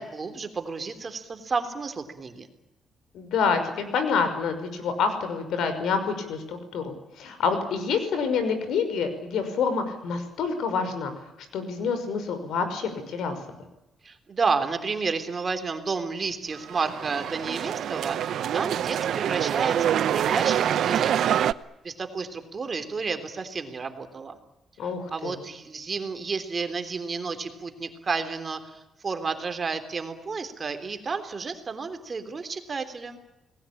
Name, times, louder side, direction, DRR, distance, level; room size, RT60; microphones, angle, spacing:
voice 1, 0.0-2.5 14.0-21.2 21.8-24.4 25.1-33.2, right 4 dB, 35° right, 8 dB, 3.4 m, -31 dB
voice 2, 3.1-11.1 11.5-13.4 24.8-25.3, left 5 dB, 80° left, 9 dB, 5.9 m, -27 dB
sound 1, 16.6-21.5, right 10 dB, 70° right, 0.8 m, -25 dB
29.0 x 19.5 x 8.7 m, 0.94 s
cardioid pair, 120°, 0 cm